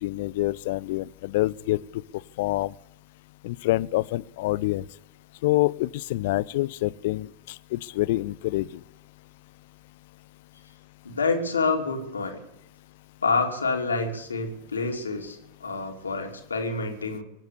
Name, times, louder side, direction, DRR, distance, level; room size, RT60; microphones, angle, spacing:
voice 1, 0.0-2.0 2.4-2.7 3.4-4.8 5.4-8.8, left 18 dB, 50° left, 21 dB, 0.5 m, -26 dB
voice 2, 11.0-12.4 13.2-17.2, left 4 dB, 75° left, 3 dB, 2.8 m, -27 dB
23.5 x 8.1 x 7.0 m, 0.89 s
figure-of-eight pair, 90°, 0 cm